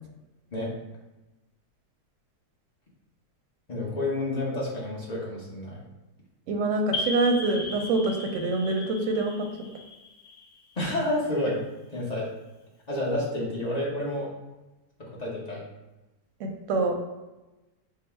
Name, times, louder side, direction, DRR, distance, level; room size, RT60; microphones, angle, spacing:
voice 1, 3.7-5.8 10.8-11.6 11.9-12.3 12.9-14.3 15.0-15.6, left 1 dB, 35° left, -5 dB, 0.7 m, -29 dB
voice 2, 6.5-9.5 16.4-16.9, right 2 dB, 65° right, 3 dB, 0.8 m, -25 dB
sound 1, 6.9-11.4, left 2 dB, 75° left, 1.1 m, -37 dB
3.8 x 2.0 x 4.3 m, 1.1 s
omnidirectional pair, 1.6 m